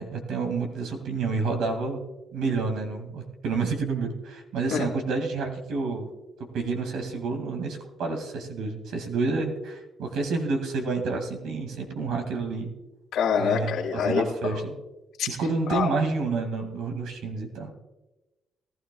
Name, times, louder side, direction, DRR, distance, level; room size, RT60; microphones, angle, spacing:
voice 1, 0.0-2.0 2.3-6.1 6.5-12.7 13.4-14.8 15.3-17.7, right 4 dB, 85° right, 4 dB, 2.1 m, -29 dB
voice 2, 13.1-14.3 15.2-15.3 15.7-15.9, left 7 dB, 75° left, -3 dB, 2.2 m, -25 dB
18.5 x 12.5 x 2.3 m, 1.1 s
cardioid pair, 90°, 0 cm